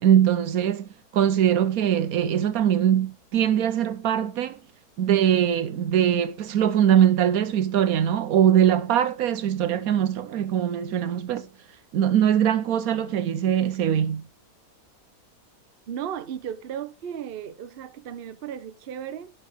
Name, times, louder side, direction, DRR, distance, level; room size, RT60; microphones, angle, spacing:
voice 1, 0.0-0.9 1.1-4.6 5.0-11.5 11.9-14.2, right 10 dB, 75° right, 1.1 m, -22 dB
voice 2, 15.9-19.3, right 9 dB, 50° right, 0.8 m, -35 dB
16.5 x 5.6 x 3.4 m
omnidirectional pair, 1.6 m